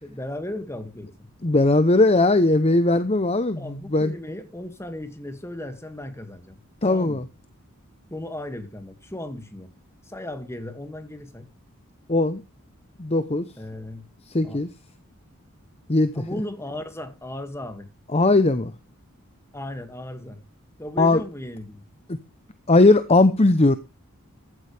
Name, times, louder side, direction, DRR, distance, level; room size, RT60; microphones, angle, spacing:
voice 1, 0.0-1.3 3.6-7.2 8.1-9.7 10.0-11.5 13.6-14.0 14.4-14.6 16.1-17.9 19.5-20.4 20.8-21.8, left 1 dB, 15° left, 2.2 m, -36 dB
voice 2, 1.4-4.1 6.8-7.2 12.1-12.4 13.0-13.5 14.3-14.7 15.9-16.2 18.1-18.7 21.0-21.2 22.7-23.8, left 2 dB, 30° left, 0.8 m, -19 dB
15.0 x 12.0 x 3.4 m
head